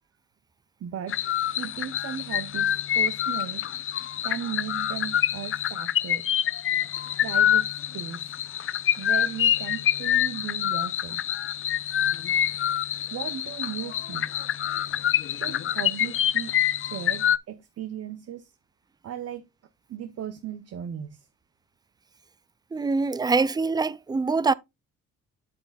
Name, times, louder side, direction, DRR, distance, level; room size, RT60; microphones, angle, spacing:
voice 1, 0.8-1.2 1.5-3.7 4.2-6.2 7.2-8.3 9.0-11.2 13.1-14.3 15.2-18.5 19.0-19.4 19.9-21.3, right 9 dB, 55° right, 0.8 m, -36 dB
sound 1, 1.1-17.4, left 10 dB, 45° left, 0.5 m, -26 dB
voice 2, 22.7-24.5, right 4 dB, 15° right, 0.4 m, -24 dB
8.4 x 8.2 x 2.3 m
cardioid pair, 90°, 30 cm